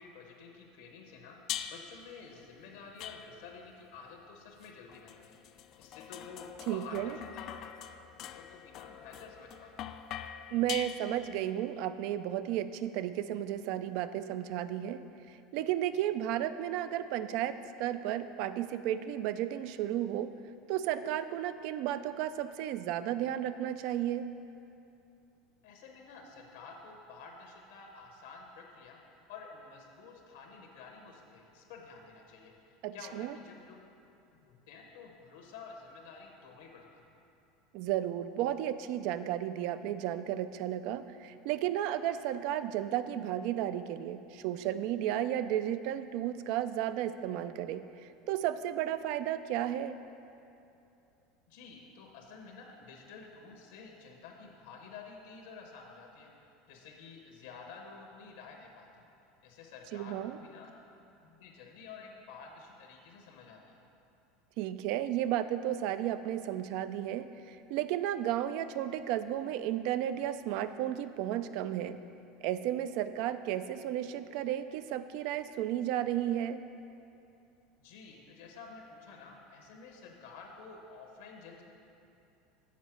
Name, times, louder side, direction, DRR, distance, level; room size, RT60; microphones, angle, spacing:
voice 1, 0.0-1.4 1.6-5.4 5.8-7.9 8.3-9.9 25.6-29.0 29.3-33.8 34.4-37.0 51.5-56.3 56.7-59.1 59.4-60.7 61.2-63.8 77.8-81.6, left 4 dB, 85° left, 1 dB, 1.1 m, -50 dB
sound 1, 1.5-2.0 3.0-3.7 4.6-11.5, left 10 dB, 50° left, 0.3 m, -43 dB
voice 2, 6.7-7.2 10.5-15.0 15.3-20.3 20.7-24.2 32.8-33.3 37.7-50.0 59.9-60.4 64.6-72.0 72.4-76.6, right 11 dB, 65° right, 12 dB, 0.3 m, -33 dB
7.3 x 4.3 x 6.0 m, 2.8 s
supercardioid pair, 120°, 0 cm